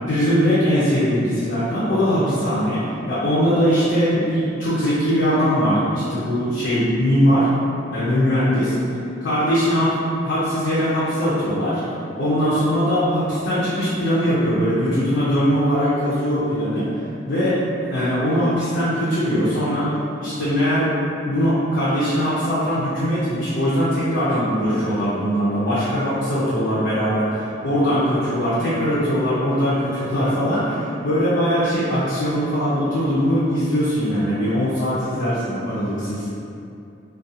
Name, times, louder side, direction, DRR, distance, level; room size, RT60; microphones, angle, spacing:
voice 1, 0.1-7.5 7.9-8.8 9.2-10.0 10.2-11.8 12.2-16.9 17.3-19.9 20.2-20.9 21.3-36.3, equal, 65° left, -10 dB, 0.5 m, -21 dB
2.4 x 2.3 x 2.6 m, 2.7 s
head